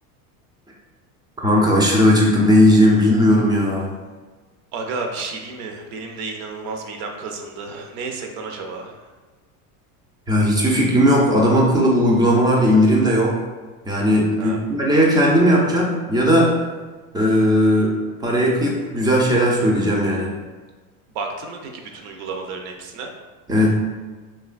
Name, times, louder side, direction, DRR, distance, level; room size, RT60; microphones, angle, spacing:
voice 1, 1.4-3.9 10.3-13.4 13.9-16.5 17.1-17.9 18.2-20.3 23.5-23.7, equal, 10° right, -2 dB, 0.3 m, -17 dB
voice 2, 4.7-9.0 14.4-14.6 21.1-23.1, right 4 dB, 65° right, 3 dB, 0.6 m, -31 dB
3.1 x 2.2 x 2.4 m, 1.3 s
supercardioid pair, 95°, 44 cm